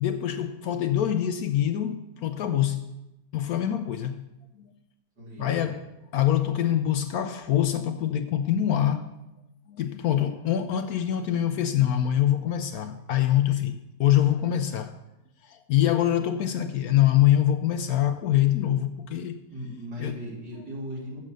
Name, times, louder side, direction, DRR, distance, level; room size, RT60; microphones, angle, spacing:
voice 1, 0.0-2.8 3.3-4.2 4.6-4.7 5.4-5.9 6.1-9.1 9.7-15.0 15.4-19.4 20.0-20.2, left 11 dB, 70° left, 0.9 m, -24 dB
voice 2, 5.2-5.6 19.5-21.2, equal, 75° right, 3.5 m, -37 dB
7.3 x 6.7 x 7.5 m
omnidirectional pair, 1.9 m